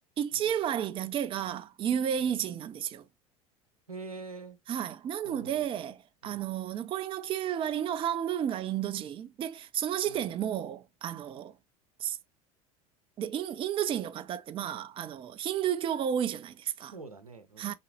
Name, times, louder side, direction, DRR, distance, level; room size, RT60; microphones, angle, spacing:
voice 1, 0.2-3.1 4.7-11.6 12.0-12.2 13.2-16.9 17.6-17.7, right 9 dB, 30° right, 0.5 m, -32 dB
voice 2, 3.9-4.6 5.2-5.7 6.2-6.4 10.0-10.3 16.8-17.7, right 3 dB, 85° right, 0.8 m, -45 dB
4.0 x 3.8 x 2.9 m
figure-of-eight pair, 70°, 18 cm